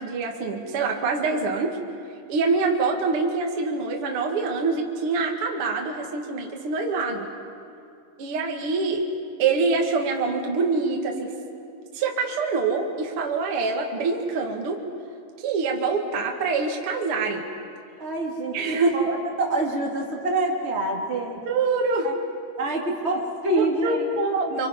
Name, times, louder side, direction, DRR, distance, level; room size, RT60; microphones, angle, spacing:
voice 1, 0.0-1.8 2.3-7.3 8.2-9.0 9.4-11.3 11.9-14.8 15.4-17.4 18.5-18.9 21.4-22.1 23.5-24.7, right 4 dB, 45° right, 1 dB, 2.3 m, -25 dB
voice 2, 18.0-21.4 22.0-22.1 22.6-24.2, right 2 dB, 20° right, -1 dB, 2.1 m, -26 dB
29.5 x 25.0 x 5.3 m, 2.5 s
omnidirectional pair, 4.6 m